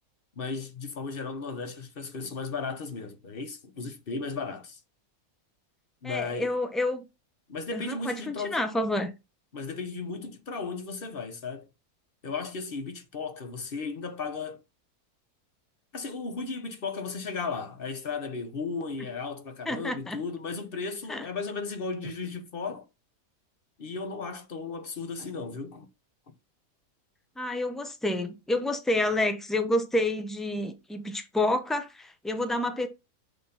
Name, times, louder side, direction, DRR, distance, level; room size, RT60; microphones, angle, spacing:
voice 1, 0.4-4.8 6.0-6.5 7.5-8.6 9.5-11.7 12.2-14.6 15.9-22.9 23.8-25.9, left 4 dB, 40° left, 1.1 m, -35 dB
voice 2, 6.0-7.0 7.7-9.1 19.7-20.2 21.1-21.3 27.4-32.9, left 1 dB, ahead, 0.5 m, -29 dB
6.7 x 3.8 x 5.6 m
omnidirectional pair, 1.6 m